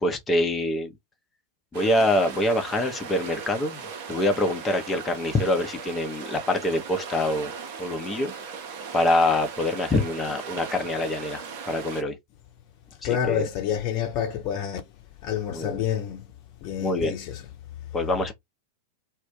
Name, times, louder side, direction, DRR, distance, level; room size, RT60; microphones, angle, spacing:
voice 1, 0.0-0.9 1.7-7.5 7.8-8.3 8.9-12.1 13.3-13.5 15.5-15.8 16.8-17.1 17.9-18.3, left 1 dB, 15° left, 0.8 m, -25 dB
sound 1, 1.7-12.0, right 6 dB, 50° right, 0.7 m, -38 dB
voice 2, 13.0-14.8 15.2-16.3 16.6-17.5, left 9 dB, 40° left, 0.9 m, -28 dB
2.5 x 2.1 x 3.6 m
figure-of-eight pair, 90°, 0 cm